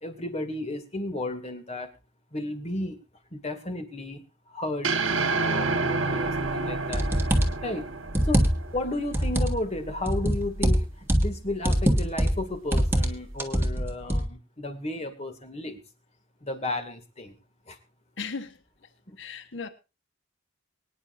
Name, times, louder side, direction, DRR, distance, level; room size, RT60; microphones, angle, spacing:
voice 1, 0.0-1.9 2.3-3.0 3.3-4.2 4.5-4.9 5.4-7.1 7.6-7.9 8.2-15.8 16.4-17.3 17.7-17.8 19.1-19.2, left 2 dB, 35° left, 2.2 m, -33 dB
sound 1, 4.8-9.2, right 3 dB, 75° right, 1.3 m, -29 dB
sound 2, 6.9-7.6 8.1-8.8 9.1-9.6 10.1-11.3 11.6-12.4 12.7-13.1 13.4-14.3, equal, 10° right, 1.6 m, -23 dB
voice 2, 18.2-18.5 19.2-19.7, left 5 dB, 65° left, 1.2 m, -36 dB
24.0 x 9.8 x 2.6 m
head